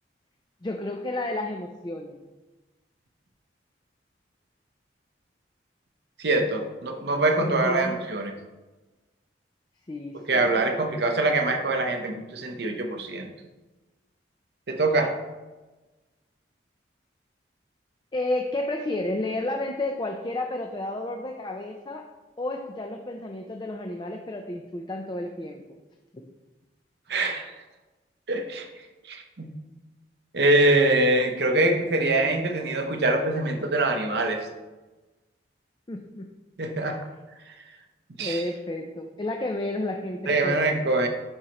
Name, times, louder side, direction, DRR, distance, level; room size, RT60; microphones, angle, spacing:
voice 1, 0.6-2.2 7.4-8.0 9.9-10.5 18.1-22.1 22.4-25.6 35.9-36.3 38.2-40.7, left 1 dB, 25° left, 3 dB, 0.4 m, -31 dB
voice 2, 6.2-8.3 10.3-13.3 14.7-15.1 27.1-27.5 28.3-28.7 29.1-29.5 30.3-34.5 36.6-37.0 38.2-38.4 40.3-41.1, right 2 dB, 65° right, 4 dB, 0.8 m, -24 dB
11.0 x 4.3 x 2.9 m, 1.2 s
head